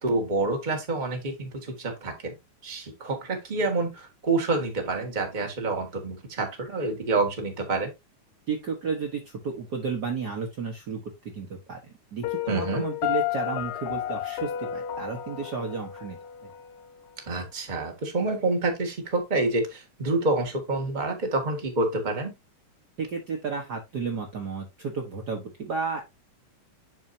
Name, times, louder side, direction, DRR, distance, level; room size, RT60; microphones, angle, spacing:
voice 1, 0.0-2.3 2.6-7.9 12.5-12.8 17.3-22.3, right 3 dB, 25° right, 1.1 m, -27 dB
voice 2, 8.5-11.0 11.3-11.8 12.1-16.5 23.0-26.0, right 5 dB, 70° right, 0.9 m, -32 dB
Piano, 12.2-17.2, left 12 dB, 85° left, 1.3 m, -32 dB
11.0 x 4.4 x 2.7 m
omnidirectional pair, 3.7 m